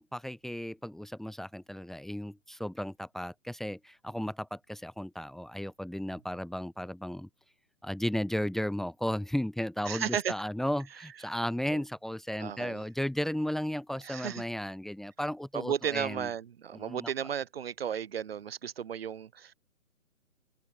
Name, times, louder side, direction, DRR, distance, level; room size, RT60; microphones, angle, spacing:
voice 1, 0.0-7.3 7.8-16.3 16.7-17.1, equal, ahead, 3.7 m, -34 dB
voice 2, 9.9-10.3 11.7-11.8 12.4-12.8 14.0-14.4 15.5-19.5, right 8 dB, 45° right, 4.9 m, -34 dB
open air
figure-of-eight pair, 140°, 41 cm